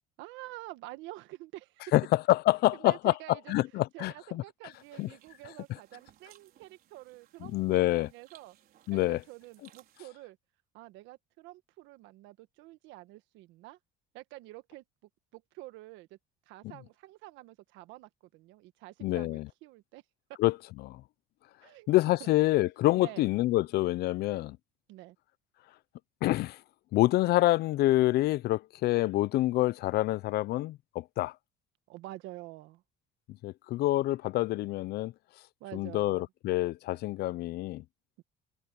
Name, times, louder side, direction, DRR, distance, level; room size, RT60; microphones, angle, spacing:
voice 1, 0.2-1.9 2.7-8.6 8.9-10.4 10.7-13.8 14.1-14.8 15.3-16.2 16.5-20.0 21.6-21.9 22.2-22.3 22.9-23.3 24.9-25.2 31.9-32.8 35.6-36.2 38.2-38.3, right 18 dB, 85° right, 1.4 m, -48 dB
voice 2, 1.9-3.1 3.5-4.4 5.0-5.1 7.4-8.1 8.9-9.2 19.0-19.5 20.4-20.6 20.8-21.0 21.9-24.6 26.2-26.6 26.9-31.3 33.4-35.1 35.7-37.8, left 17 dB, 60° left, 0.5 m, -27 dB
sound 1, 4.7-10.0, right 11 dB, 55° right, 4.6 m, -62 dB
cardioid pair, 150°, 19 cm